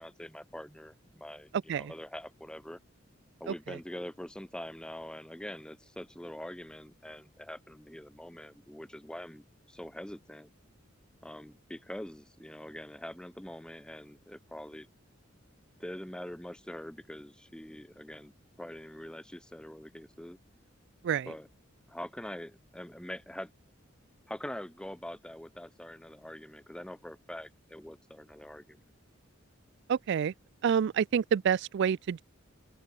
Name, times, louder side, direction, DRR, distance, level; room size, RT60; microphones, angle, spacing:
voice 1, 0.0-2.8 3.4-10.5 11.2-14.9 15.8-18.3 18.6-20.4 21.3-21.5 21.9-23.5 24.3-28.8, left 1 dB, 5° left, 0.6 m, -44 dB
voice 2, 29.9-30.3 30.6-32.2, right 7 dB, 60° right, 0.3 m, -28 dB
open air
head